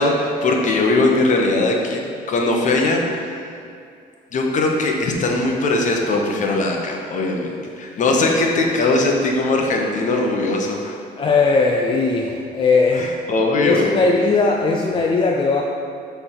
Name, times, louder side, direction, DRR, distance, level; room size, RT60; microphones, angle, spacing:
voice 1, 0.0-3.6 4.3-11.0 13.3-13.9, left 2 dB, 45° left, 1 dB, 1.0 m, -20 dB
voice 2, 11.1-13.1 13.6-15.6, left 3 dB, 30° left, 0 dB, 0.5 m, -18 dB
6.9 x 3.5 x 5.6 m, 2.3 s
cardioid pair, 110°, 17 cm